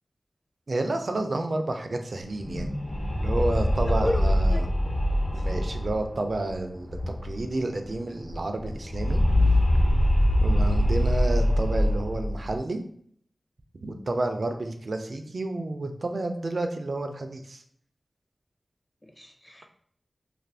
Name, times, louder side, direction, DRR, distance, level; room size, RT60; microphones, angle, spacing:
voice 1, 0.7-2.7 3.2-4.7 5.3-9.2 10.4-12.8 13.8-17.6, right 2 dB, 65° right, 5 dB, 0.4 m, -30 dB
sound 1, 2.3-7.6 7.9-8.0 8.2-12.6, left 1 dB, 65° left, 0.7 m, -24 dB
voice 2, 3.9-4.2 4.5-4.6 10.5-10.8 19.0-19.7, equal, 20° left, 4 dB, 0.5 m, -32 dB
2.5 x 2.4 x 3.3 m, 0.63 s
cardioid pair, 45°, 0 cm